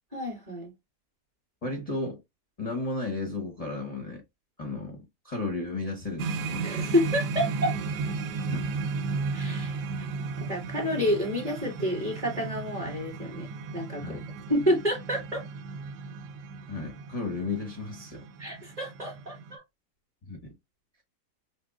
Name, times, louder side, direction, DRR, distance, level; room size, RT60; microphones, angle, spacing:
voice 1, 0.1-0.7 6.6-7.8 9.3-10.1 10.4-14.2 14.5-15.4 18.4-19.6, equal, 25° right, 1.8 m, -29 dB
voice 2, 1.6-2.2 2.6-4.2 4.6-6.7 8.5-8.7 14.0-14.2 16.7-18.2 20.3-20.5, left 3 dB, 30° left, 0.7 m, -34 dB
sound 1, 6.2-19.5, right 4 dB, 85° right, 1.2 m, -35 dB
5.9 x 2.3 x 2.4 m
omnidirectional pair, 1.7 m